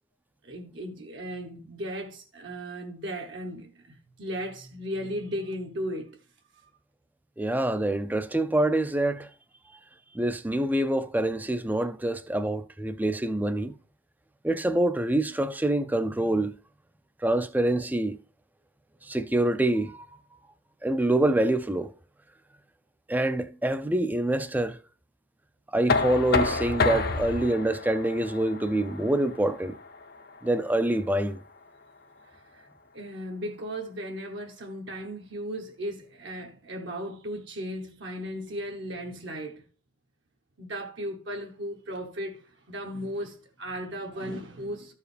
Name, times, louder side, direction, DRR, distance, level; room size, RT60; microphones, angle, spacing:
voice 1, 0.4-6.2 32.5-32.7 32.9-39.6 40.6-44.9, equal, 60° right, 1.0 m, -36 dB
voice 2, 7.4-9.3 10.1-13.7 14.4-16.5 17.2-18.2 19.0-20.1 20.8-21.9 23.1-24.8 25.7-29.8 30.4-31.4, right 1 dB, 10° right, 0.4 m, -26 dB
Knock, 25.9-31.7, left 4 dB, 50° left, 0.7 m, -30 dB
13.0 x 4.7 x 3.3 m
head